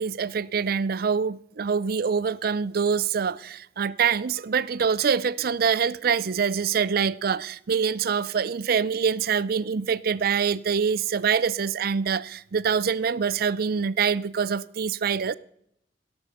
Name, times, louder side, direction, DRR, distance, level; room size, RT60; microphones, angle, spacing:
voice 1, 0.0-15.3, right 6 dB, 60° right, 0.5 m, -25 dB
17.5 x 10.5 x 5.5 m
head